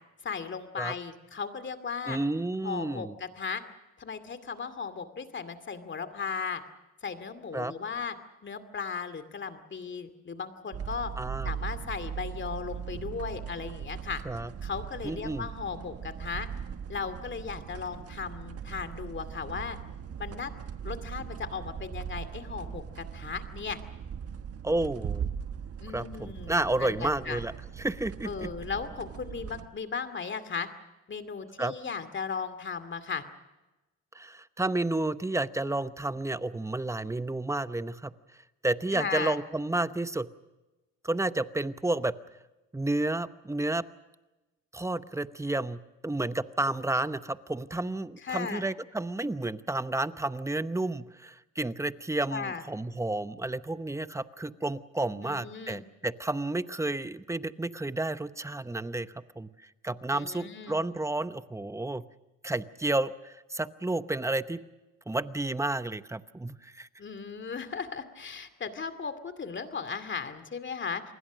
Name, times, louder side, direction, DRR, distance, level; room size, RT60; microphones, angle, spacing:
voice 1, 0.2-2.2 2.6-3.6 4.0-6.6 7.0-8.2 8.4-11.1 11.4-14.2 14.6-16.5 16.9-19.8 20.2-20.5 20.8-23.8 25.8-27.4 28.2-30.7 31.1-33.2 38.9-39.4 48.2-48.6 52.3-52.6 55.1-55.8 60.1-60.8 67.0-71.0, left 5 dB, 40° left, 10 dB, 2.5 m, -36 dB
voice 2, 2.1-3.1 7.5-7.7 11.2-11.5 14.2-14.5 15.0-15.5 24.6-25.3 25.9-27.5 27.8-28.5 31.6-31.7 34.1-38.1 38.6-40.3 41.0-42.2 42.7-43.8 44.7-62.0 62.4-64.6 65.1-66.9, right 2 dB, 10° right, 13 dB, 0.9 m, -31 dB
sound 1, 10.7-29.7, right 7 dB, 50° right, 1.3 m, -39 dB
28.5 x 20.5 x 6.3 m, 1.1 s
cardioid pair, 90°, 30 cm